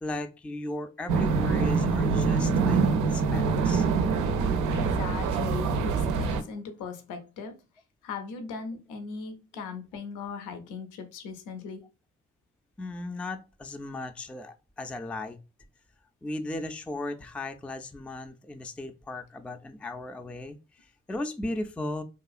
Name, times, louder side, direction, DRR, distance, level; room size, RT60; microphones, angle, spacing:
voice 1, 0.0-3.9 12.8-15.4 16.2-22.0, left 2 dB, 5° left, 0.3 m, -36 dB
sound 1, 1.1-6.4, right 4 dB, 80° right, 0.5 m, -25 dB
voice 2, 4.7-7.6 8.0-11.8, left 5 dB, 80° left, 0.6 m, -38 dB
2.8 x 2.4 x 2.4 m
hypercardioid pair, 40°, 31 cm